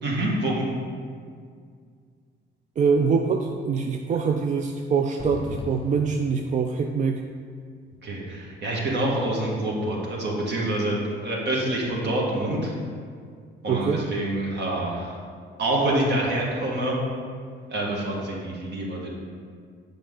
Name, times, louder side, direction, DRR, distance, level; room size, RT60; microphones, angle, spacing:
voice 1, 0.0-0.7 8.0-12.7 13.6-15.1 15.6-16.9 17.7-19.2, right 1 dB, 60° right, -3 dB, 1.7 m, -26 dB
voice 2, 2.8-7.2 13.7-14.0, right 5 dB, 40° right, 3 dB, 0.4 m, -24 dB
sound 1, 5.2-7.1, left 4 dB, 30° left, 0.4 m, -38 dB
7.3 x 5.0 x 3.7 m, 2.1 s
cardioid pair, 90°, 20 cm